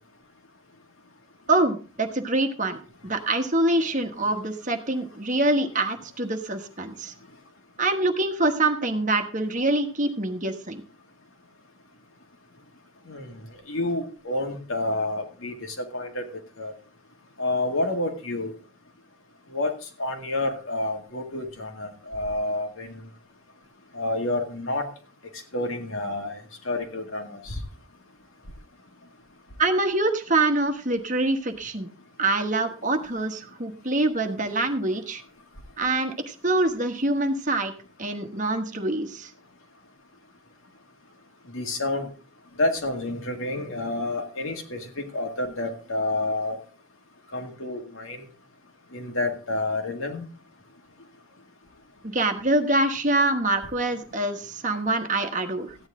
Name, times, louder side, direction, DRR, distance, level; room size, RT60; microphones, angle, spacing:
voice 1, 1.5-2.8 3.0-7.1 7.8-10.8 29.6-31.9 32.2-35.2 35.8-37.7 38.0-39.3 52.0-55.8, right 2 dB, 35° right, 6 dB, 1.2 m, -25 dB
voice 2, 13.1-13.4 13.7-16.3 16.6-16.7 17.4-18.5 19.5-19.7 20.0-23.1 23.9-24.8 25.5-26.4 26.6-27.6 41.5-42.1 42.6-46.6 47.3-48.2 48.9-50.2, left 2 dB, 65° left, 3 dB, 2.2 m, -29 dB
14.5 x 9.7 x 3.7 m, 0.36 s
head